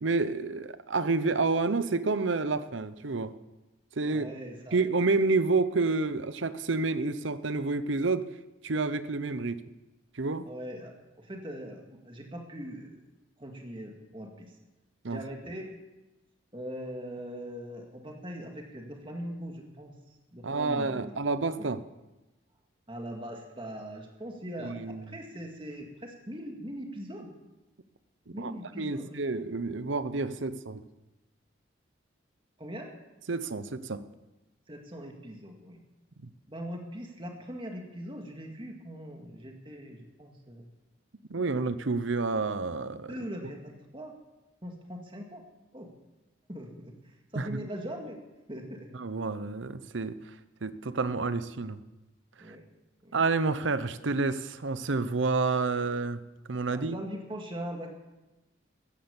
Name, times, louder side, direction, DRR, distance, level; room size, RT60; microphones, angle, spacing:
voice 1, 0.0-3.3 4.0-4.3 4.7-8.3 8.6-9.6 10.1-10.5 15.0-15.2 20.4-21.8 24.6-25.2 28.4-28.5 28.8-30.8 33.3-34.0 41.3-43.1 47.3-47.6 48.9-50.3 50.6-51.8 52.5-52.6 53.1-56.2 56.5-57.0, right 3 dB, 80° right, 14 dB, 0.8 m, -29 dB
voice 2, 4.1-4.8 10.5-13.0 13.4-14.5 15.1-15.7 16.5-19.9 20.3-21.1 21.6-21.7 22.9-27.3 28.3-29.2 32.6-32.9 34.7-35.8 36.5-40.7 41.4-41.6 43.1-44.1 44.6-45.4 45.7-45.9 46.5-46.9 47.3-48.2 48.5-48.9 52.4-52.6 53.0-53.1 56.7-58.0, equal, 25° right, 2 dB, 2.0 m, -41 dB
14.5 x 10.5 x 7.1 m, 1.0 s
head